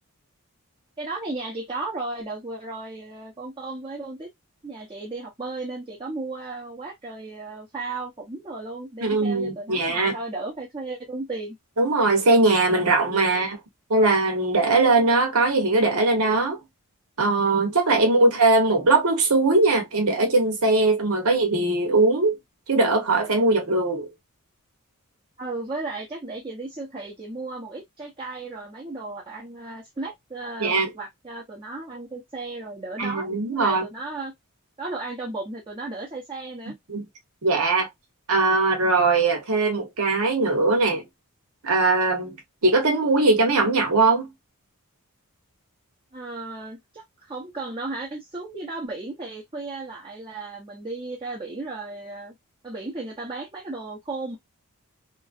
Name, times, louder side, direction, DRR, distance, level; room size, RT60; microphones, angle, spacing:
voice 1, 1.0-4.3 4.6-11.6 25.4-34.3 34.8-36.7 46.1-52.4 52.6-54.4, right 3 dB, 20° right, 0.8 m, -35 dB
voice 2, 9.0-10.1 11.8-13.6 13.9-16.6 17.2-22.4 22.7-24.1 30.6-30.9 33.0-33.8 36.9-37.0 37.4-37.9 38.3-41.0 41.6-42.4 42.6-44.3, right 3 dB, 75° right, 1.1 m, -20 dB
3.0 x 2.5 x 2.5 m
head